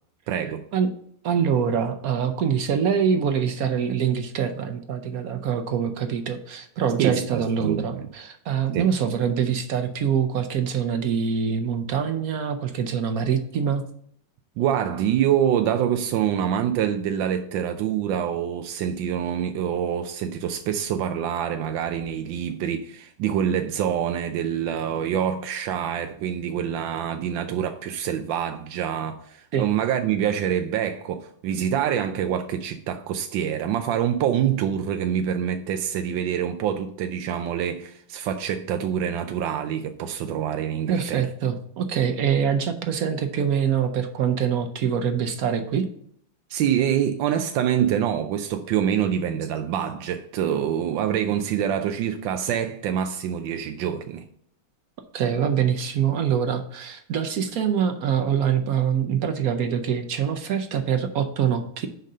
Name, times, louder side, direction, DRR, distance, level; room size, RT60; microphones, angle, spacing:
voice 1, 0.3-0.6 7.0-8.1 8.7-8.9 14.6-41.2 46.5-54.2, right 9 dB, 90° right, 1.3 m, -26 dB
voice 2, 1.2-13.8 29.5-29.6 40.9-45.9 55.1-61.9, right 7 dB, 65° right, 1.0 m, -24 dB
6.5 x 5.2 x 5.4 m
omnidirectional pair, 2.0 m